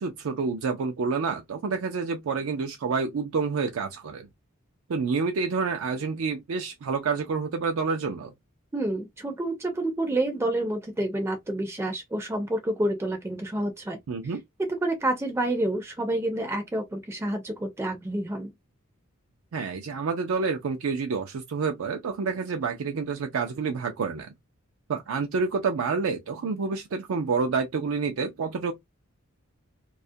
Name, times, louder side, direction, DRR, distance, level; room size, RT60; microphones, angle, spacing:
voice 1, 0.0-4.3 4.9-8.3 14.1-14.4 19.5-24.3 24.9-28.7, right 5 dB, 75° right, 0.4 m, -28 dB
voice 2, 8.7-14.0 14.2-14.3 14.8-18.5, right 1 dB, 10° right, 0.4 m, -28 dB
2.3 x 2.1 x 2.5 m
head